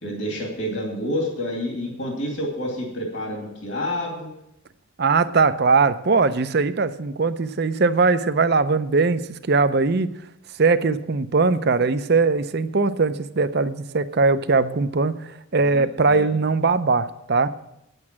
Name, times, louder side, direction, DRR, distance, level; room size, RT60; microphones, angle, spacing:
voice 1, 0.0-4.3 15.6-16.2, left 1 dB, 60° left, -1 dB, 2.6 m, -29 dB
voice 2, 5.0-10.1 10.6-17.5, right 4 dB, 50° right, 12 dB, 0.6 m, -20 dB
9.6 x 8.1 x 7.4 m, 0.82 s
head